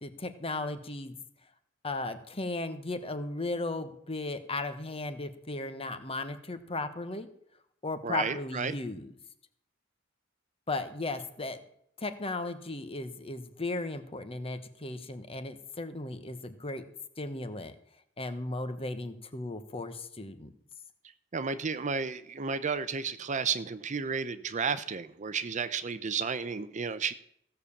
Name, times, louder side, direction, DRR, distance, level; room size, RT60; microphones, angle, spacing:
voice 1, 0.0-1.2 1.8-7.3 7.8-9.1 10.7-11.6 12.0-16.8 17.2-17.7 18.2-20.5, left 2 dB, 30° left, 10 dB, 1.2 m, -36 dB
voice 2, 8.0-8.7 21.3-27.1, right 5 dB, 40° right, 13 dB, 0.6 m, -32 dB
16.0 x 6.8 x 7.1 m, 0.70 s
head